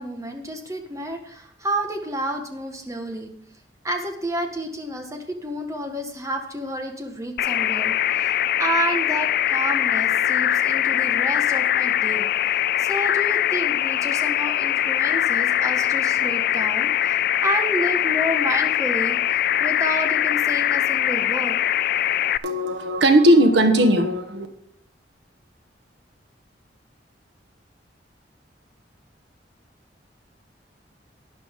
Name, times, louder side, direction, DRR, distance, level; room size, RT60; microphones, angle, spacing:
voice 1, 0.0-3.3 3.8-12.3 12.8-19.2 19.6-21.6, right 1 dB, 20° right, 4 dB, 1.6 m, -30 dB
sound 1, 7.4-22.4, left 11 dB, 55° left, 0.3 m, -22 dB
voice 2, 22.4-24.5, right 1 dB, 90° right, 6 dB, 1.5 m, -17 dB
12.0 x 10.5 x 3.8 m, 0.68 s
head